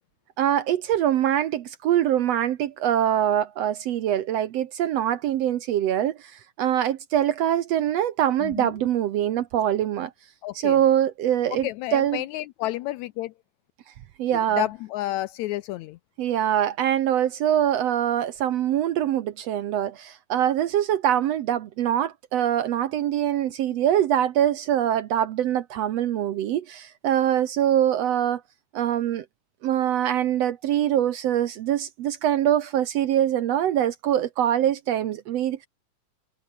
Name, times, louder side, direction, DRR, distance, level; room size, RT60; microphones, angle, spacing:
voice 1, 0.4-10.1 10.6-12.2 14.2-14.7 16.2-28.4 28.7-29.3 29.6-35.7, right 11 dB, 65° right, 1.7 m, -23 dB
voice 2, 8.4-8.7 10.4-10.8 11.6-13.3 14.6-16.0, left 15 dB, 80° left, 1.7 m, -30 dB
omnidirectional pair, 3.7 m